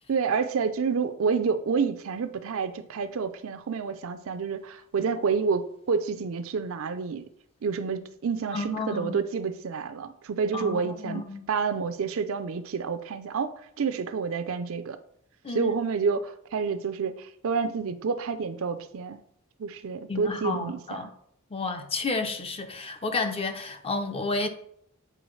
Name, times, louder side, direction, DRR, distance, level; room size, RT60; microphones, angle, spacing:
voice 1, 0.1-7.3 7.6-15.0 15.5-19.2 19.6-21.1, right 5 dB, 65° right, 0.5 m, -29 dB
voice 2, 8.5-9.2 10.5-11.4 15.4-15.7 20.1-21.1 21.5-24.5, left 3 dB, 25° left, 0.6 m, -31 dB
7.7 x 4.4 x 3.2 m
head